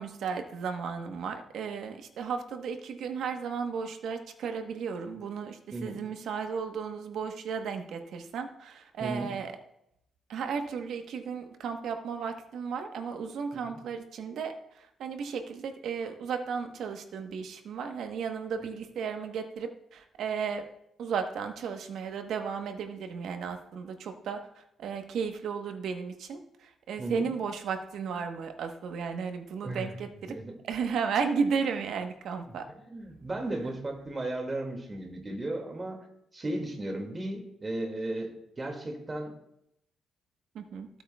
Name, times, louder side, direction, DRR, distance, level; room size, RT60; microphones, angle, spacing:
voice 1, 0.0-9.5 10.3-20.7 21.0-30.3 30.7-32.7 40.5-40.9, right 6 dB, 70° right, 6 dB, 1.1 m, -34 dB
voice 2, 27.0-27.3 29.6-29.9 30.3-30.5 32.8-36.1 36.3-39.3, right 1 dB, 25° right, 2 dB, 2.1 m, -35 dB
15.5 x 8.2 x 2.3 m, 0.79 s
cardioid pair, 90°, 0 cm